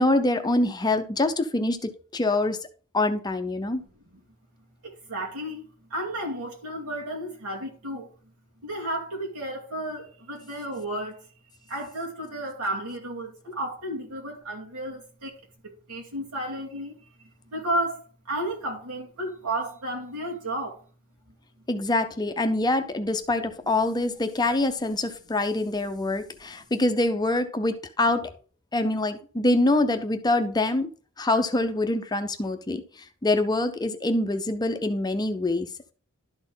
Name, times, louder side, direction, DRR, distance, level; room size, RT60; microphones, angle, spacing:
voice 1, 0.0-1.8 2.1-2.6 2.9-3.8 21.7-28.3 28.7-30.9 31.2-32.8 33.2-35.9, left 2 dB, 20° left, 0.6 m, -25 dB
voice 2, 4.8-8.1 8.6-11.3 11.6-15.3 15.6-16.9 17.2-20.8, right 1 dB, 90° right, 2.4 m, -33 dB
11.5 x 4.2 x 3.8 m
head